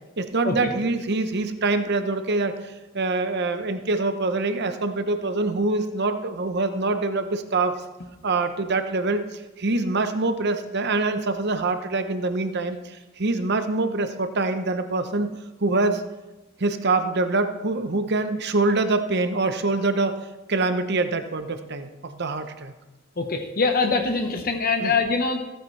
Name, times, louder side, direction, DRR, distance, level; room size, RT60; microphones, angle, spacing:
voice 1, 0.2-7.7 8.2-9.2 9.6-15.3 15.6-16.0 16.6-20.2 20.5-22.7 24.8-24.9, right 3 dB, 55° right, 8 dB, 0.8 m, -25 dB
voice 2, 23.2-25.4, left 4 dB, 45° left, 5 dB, 1.1 m, -23 dB
15.0 x 9.1 x 3.3 m, 1.1 s
head